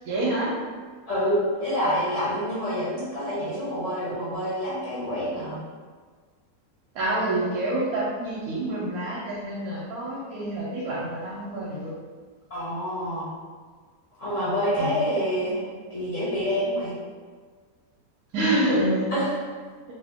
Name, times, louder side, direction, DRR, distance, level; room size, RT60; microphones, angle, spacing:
voice 1, 0.1-0.5 6.9-12.0 14.8-14.9 18.3-19.2, right 1 dB, 85° right, -6 dB, 1.1 m, -27 dB
voice 2, 1.1-5.6 12.5-13.2 14.2-15.6 15.9-16.9 19.1-19.2, equal, 60° left, -11 dB, 1.4 m, -27 dB
2.8 x 2.7 x 3.4 m, 1.5 s
omnidirectional pair, 1.5 m